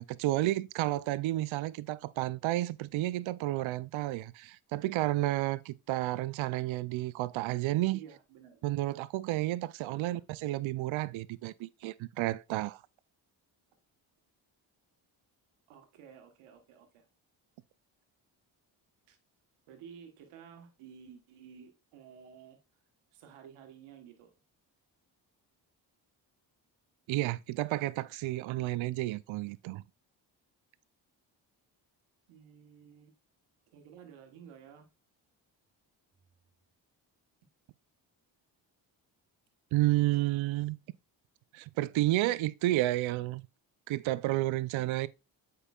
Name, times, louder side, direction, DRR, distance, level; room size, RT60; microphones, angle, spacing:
voice 1, 0.0-8.0 8.6-12.8 27.1-29.8 39.7-40.8 41.5-43.5 43.9-45.1, right 16 dB, 70° right, 0.5 m, -31 dB
voice 2, 7.9-8.6 9.9-10.2 15.7-17.1 19.1-19.2 19.7-22.6 23.1-24.3 32.3-33.1 33.7-34.9, right 8 dB, 90° right, 1.4 m, -52 dB
8.0 x 5.4 x 2.3 m
supercardioid pair, 50°, 50 cm